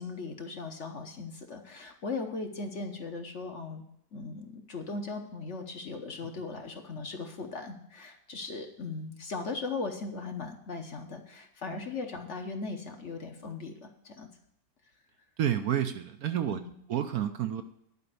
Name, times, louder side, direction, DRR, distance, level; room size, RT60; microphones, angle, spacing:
voice 1, 0.0-3.8 4.1-14.3 16.5-16.7, left 3 dB, 50° left, 4 dB, 1.2 m, -38 dB
voice 2, 15.4-16.6 16.9-17.6, right 10 dB, 65° right, 8 dB, 1.1 m, -29 dB
11.0 x 5.1 x 8.3 m, 0.74 s
omnidirectional pair, 1.9 m